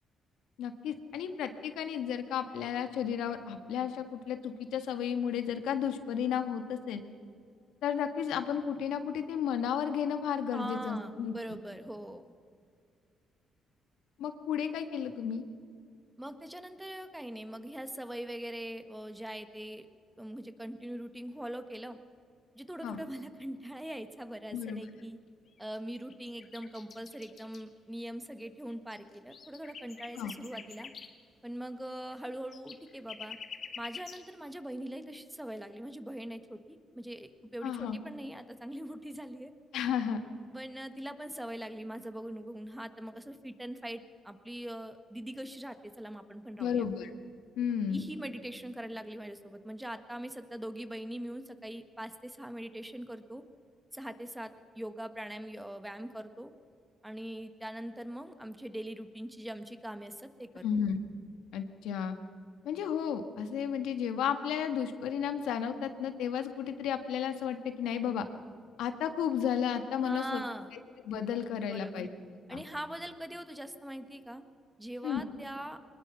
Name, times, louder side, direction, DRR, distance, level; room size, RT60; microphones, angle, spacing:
voice 1, 0.6-7.0 7.8-11.6 14.2-15.4 22.8-23.0 24.5-24.8 30.1-30.3 37.6-38.0 39.7-40.2 46.6-47.1 47.6-48.1 60.6-61.0 61.5-62.2 62.6-68.2 68.8-70.4 71.0-72.1 72.5-72.6 75.0-75.2, left 8 dB, 85° left, 8 dB, 1.6 m, -33 dB
voice 2, 10.5-12.2 16.2-19.9 20.2-22.0 22.5-25.2 25.6-30.9 31.4-33.4 33.8-39.5 40.5-46.8 47.9-53.4 53.9-56.5 57.0-60.6 70.0-70.7 71.6-72.0 72.5-74.4 74.8-75.8, right 1 dB, 5° right, 9 dB, 1.5 m, -42 dB
sound 1, 25.5-25.8 26.1-27.6 28.4-28.5 28.7-31.1 31.8-31.9 32.1-34.2, left 6 dB, 50° left, 2.0 m, -46 dB
23.0 x 20.5 x 5.7 m, 2.3 s
cardioid pair, 90°, 0 cm